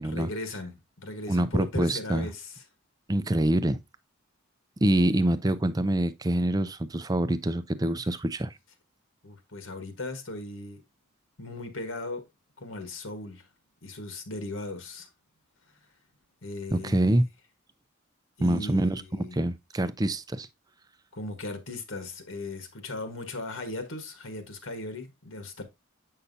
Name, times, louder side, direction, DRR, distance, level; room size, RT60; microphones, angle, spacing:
voice 1, 0.0-2.6 9.2-10.8 11.4-12.3 12.6-13.4 13.8-15.1 16.4-17.1 18.4-19.5 21.1-25.6, left 2 dB, 75° left, 1.4 m, -38 dB
voice 2, 1.3-2.3 3.1-3.8 4.8-8.5 16.7-17.2 18.4-20.5, right 1 dB, 20° right, 0.4 m, -25 dB
8.2 x 5.6 x 2.7 m
head